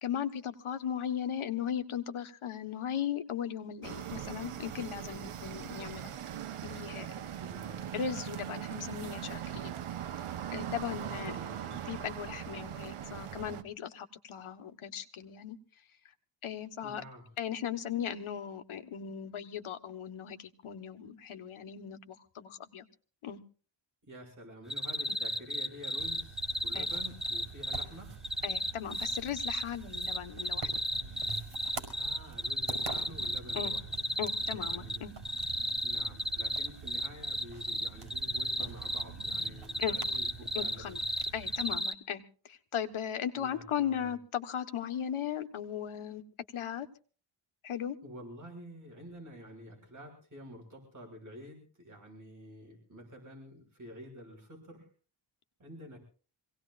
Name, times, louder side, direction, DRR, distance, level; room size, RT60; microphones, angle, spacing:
voice 1, 0.0-6.1 6.6-7.1 7.9-9.7 10.5-11.4 11.9-15.6 16.4-17.0 17.4-22.9 23.2-23.4 26.7-26.9 28.4-30.7 33.5-33.7 34.2-35.1 39.8-40.0 40.5-41.0 41.3-46.2 46.5-46.9 47.6-48.0, left 9 dB, 75° left, 8 dB, 1.4 m, -37 dB
sound 1, 3.8-13.6, right 10 dB, 85° right, 1.1 m, -40 dB
voice 2, 7.4-7.9 10.9-11.8 16.8-17.2 24.0-28.2 32.0-33.8 34.5-35.0 35.8-41.0 43.4-44.1 48.0-54.9 55.6-56.0, equal, 35° right, 1 dB, 6.3 m, -49 dB
sound 2, 24.7-27.8 28.2-29.6 29.9-35.0 35.2-41.9, equal, ahead, 1.0 m, -33 dB
sound 3, 26.0-41.8, right 5 dB, 55° right, 5.2 m, -46 dB
26.0 x 18.0 x 2.5 m, 0.39 s
wide cardioid pair, 135°, 50 cm